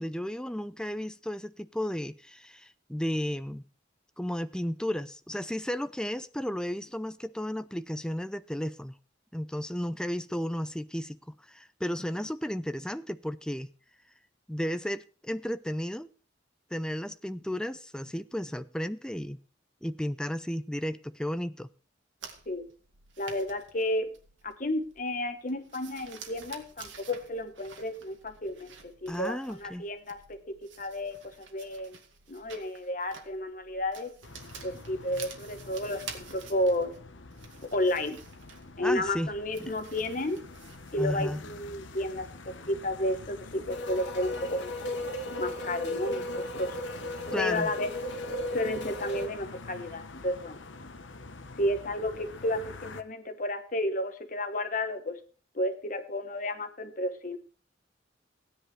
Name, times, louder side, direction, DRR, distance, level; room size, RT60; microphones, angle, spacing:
voice 1, 0.0-3.6 4.2-8.9 9.3-13.7 14.5-16.1 16.7-19.4 19.8-21.7 29.1-29.9 38.8-39.3 39.6-39.7 41.0-41.4 47.3-47.7, equal, 5° left, 0.5 m, -33 dB
sound 1, 22.2-41.4, right 6 dB, 80° right, 2.1 m, -50 dB
voice 2, 23.2-24.1 24.4-32.0 32.3-34.1 34.6-37.0 37.6-38.2 38.8-40.4 40.9-44.7 45.4-46.8 47.4-47.9 48.5-50.9 51.6-55.2 55.5-57.4, left 1 dB, 45° left, 1.3 m, -32 dB
sound 2, 34.2-53.0, left 3 dB, 85° left, 1.1 m, -47 dB
sound 3, 43.7-49.3, left 1 dB, 70° left, 2.5 m, -35 dB
16.5 x 10.0 x 3.3 m
head